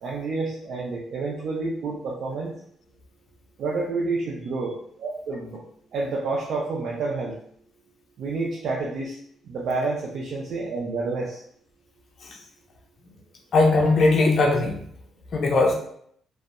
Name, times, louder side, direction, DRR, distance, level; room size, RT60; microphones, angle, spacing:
voice 1, 0.0-2.5 3.6-5.6 5.9-7.4 8.2-9.2 9.5-11.4, right 3 dB, 65° right, -3 dB, 0.4 m, -29 dB
voice 2, 13.5-14.8 15.3-15.7, left 3 dB, 55° left, 0 dB, 0.4 m, -19 dB
2.6 x 2.0 x 2.4 m, 0.66 s
cardioid pair, 90°, 0 cm